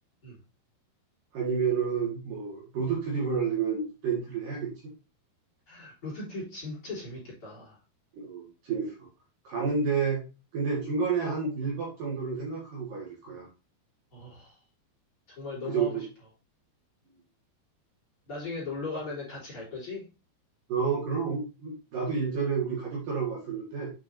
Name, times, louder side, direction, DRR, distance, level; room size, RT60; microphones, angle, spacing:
voice 1, 1.3-4.7 8.1-9.1 9.4-10.2 10.5-13.5 15.6-16.0 20.7-23.9, right 5 dB, 60° right, -3 dB, 2.7 m, -30 dB
voice 2, 5.7-7.8 14.1-14.6 15.4-16.1 18.3-20.0, left 3 dB, 35° left, -4 dB, 3.8 m, -38 dB
7.5 x 6.0 x 2.6 m, 0.31 s
omnidirectional pair, 5.0 m